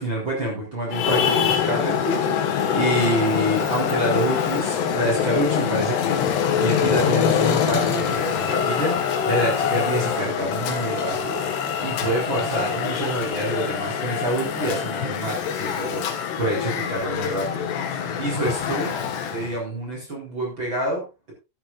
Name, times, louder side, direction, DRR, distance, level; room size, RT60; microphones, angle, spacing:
voice 1, 0.0-17.7 17.9-19.0 19.3-21.3, right 1 dB, 25° right, -1 dB, 4.5 m, -27 dB
Traffic noise roadway noise, 0.9-19.6, left 8 dB, 70° left, 3.6 m, -24 dB
14.0 x 12.5 x 2.6 m, 0.26 s
omnidirectional pair, 5.4 m